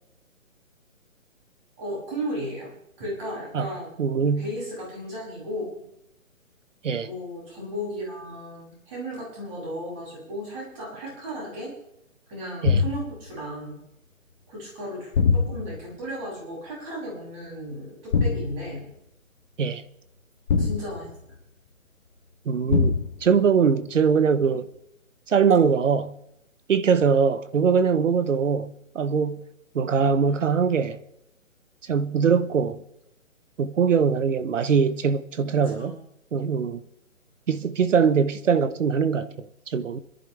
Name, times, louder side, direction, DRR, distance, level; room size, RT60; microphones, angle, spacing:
voice 1, 1.8-2.7 3.0-5.7 7.0-11.7 12.3-13.8 14.5-18.8 20.6-21.1 35.6-36.0, equal, 25° right, 7.0 m, -35 dB
voice 2, 4.0-4.5 6.8-7.1 12.6-12.8 19.6-19.8 22.5-24.7 25.3-26.1 26.7-29.4 29.7-31.0 31.9-32.8 33.6-35.9 36.3-36.8 37.5-40.0, right 6 dB, 65° right, 1.0 m, -22 dB
sound 1, 12.6-13.2 15.1-15.9 18.1-18.7 20.5-21.3 22.7-23.3, left 5 dB, 35° left, 1.7 m, -23 dB
30.0 x 11.0 x 3.3 m
hypercardioid pair, 165°, 41 cm